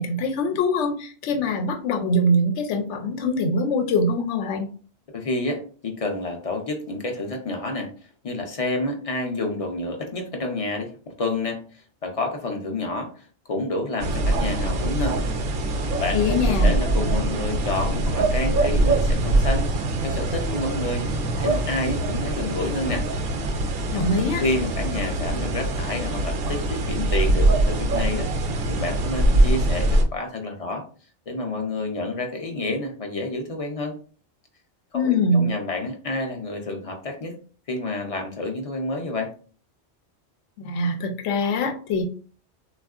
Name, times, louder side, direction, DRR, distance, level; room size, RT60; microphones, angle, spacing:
voice 1, 0.0-4.7 16.1-16.7 23.9-24.4 34.9-35.5 40.6-42.0, left 1 dB, 85° left, 5 dB, 0.9 m, -23 dB
voice 2, 5.1-7.9 8.2-10.9 11.2-11.6 12.0-15.2 16.0-21.1 21.4-23.0 24.4-28.3 28.7-30.8 31.3-33.9 34.9-37.3 37.7-39.3, left 2 dB, 40° left, 3 dB, 0.5 m, -29 dB
sound 1, 14.0-30.0, right 2 dB, 65° right, 0.8 m, -23 dB
3.5 x 2.3 x 2.3 m, 0.40 s
omnidirectional pair, 1.1 m